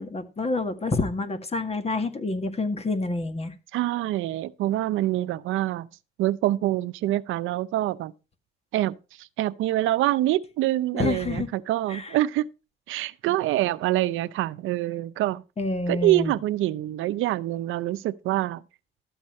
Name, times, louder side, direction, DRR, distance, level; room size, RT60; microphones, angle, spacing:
voice 1, 0.0-3.5 10.9-11.5 11.9-12.1 15.6-16.3, left 3 dB, 30° left, 1.8 m, -28 dB
voice 2, 3.7-5.9 6.2-8.1 8.7-12.5 12.9-15.4 15.9-18.6, right 15 dB, 90° right, 0.6 m, -25 dB
12.5 x 8.0 x 4.3 m
cardioid pair, 90°, 20 cm